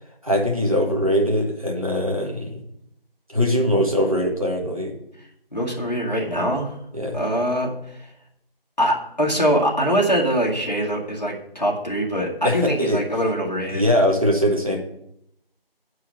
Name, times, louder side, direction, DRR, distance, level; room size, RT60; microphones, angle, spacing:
voice 1, 0.2-2.6 3.3-5.0 6.9-7.2 12.4-13.0 13.7-14.8, equal, 35° right, 0 dB, 1.4 m, -21 dB
voice 2, 5.5-6.8 7.1-7.7 8.8-13.8, equal, 45° left, -4 dB, 2.1 m, -23 dB
8.2 x 4.8 x 7.3 m, 0.76 s
figure-of-eight pair, 180°, 30 cm